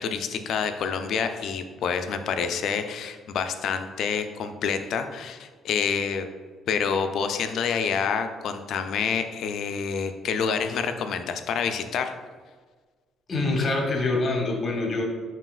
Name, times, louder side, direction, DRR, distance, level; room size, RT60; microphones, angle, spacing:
voice 1, 0.0-6.3 6.7-12.2, left 6 dB, 65° left, 8 dB, 0.3 m, -28 dB
voice 2, 13.3-15.0, left 2 dB, 40° left, 1 dB, 0.9 m, -25 dB
5.4 x 2.8 x 2.4 m, 1.5 s
cardioid pair, 85°, 0 cm